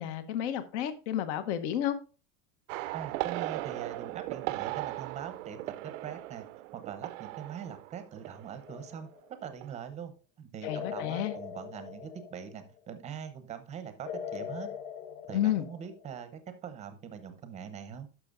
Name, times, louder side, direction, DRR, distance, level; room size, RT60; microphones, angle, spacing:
voice 1, 0.0-2.0 10.6-11.4 15.3-15.7, left 11 dB, 60° left, 1.0 m, -31 dB
sound 1, 2.7-9.1 9.4-9.7, right 18 dB, 70° right, 0.5 m, -38 dB
voice 2, 2.9-5.6 5.8-6.5 6.7-10.1 10.4-14.7 15.3-18.1, right 8 dB, 15° right, 0.7 m, -42 dB
sound 2, 8.7-9.3 10.6-12.7 14.1-16.1, left 8 dB, 85° left, 1.1 m, -41 dB
12.0 x 5.9 x 2.5 m
supercardioid pair, 170°, 39 cm